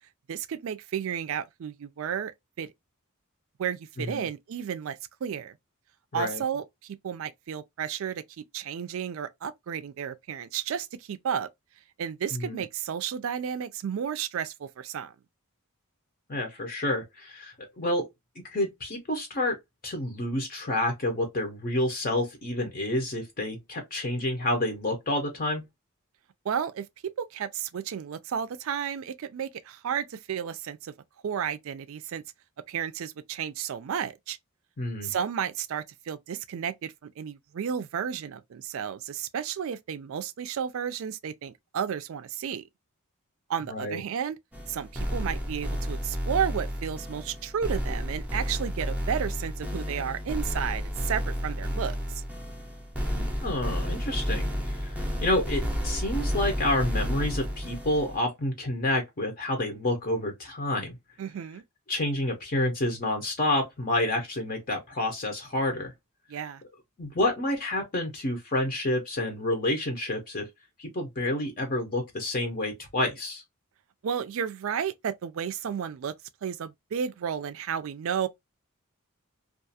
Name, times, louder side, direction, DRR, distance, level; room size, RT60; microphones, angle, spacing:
voice 1, 0.3-2.3 2.6-2.7 3.6-5.5 6.1-11.5 12.0-15.1 26.4-30.9 31.2-32.2 32.7-34.4 35.0-42.6 43.5-44.4 44.7-52.2 61.2-61.6 66.3-66.6 74.0-76.1 76.4-78.3, right 8 dB, 65° right, 0.3 m, -32 dB
voice 2, 6.1-6.4 12.3-12.6 16.3-18.1 18.4-19.6 19.8-25.6 34.8-35.1 43.7-44.0 53.1-61.0 61.9-65.9 67.0-70.5 70.8-73.4, left 1 dB, 40° left, 0.6 m, -29 dB
sound 1, 44.5-58.2, equal, 5° right, 0.6 m, -31 dB
2.4 x 2.3 x 2.6 m
head